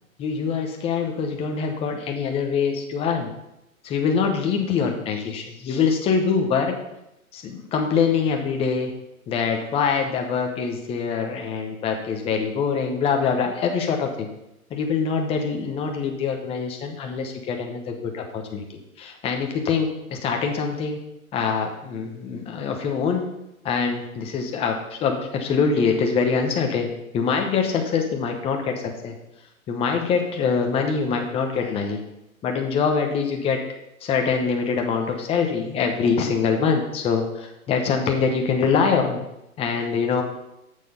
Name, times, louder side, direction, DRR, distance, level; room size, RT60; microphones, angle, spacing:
voice 1, 0.2-3.3 3.8-6.8 7.3-8.9 9.3-14.3 14.7-18.6 19.0-21.0 21.3-23.2 23.6-29.2 29.7-32.0 32.4-33.6 34.0-39.2 39.6-40.2, left 5 dB, 15° left, 3 dB, 1.0 m, -24 dB
8.1 x 6.9 x 5.5 m, 0.88 s
hypercardioid pair, 140°, 43 cm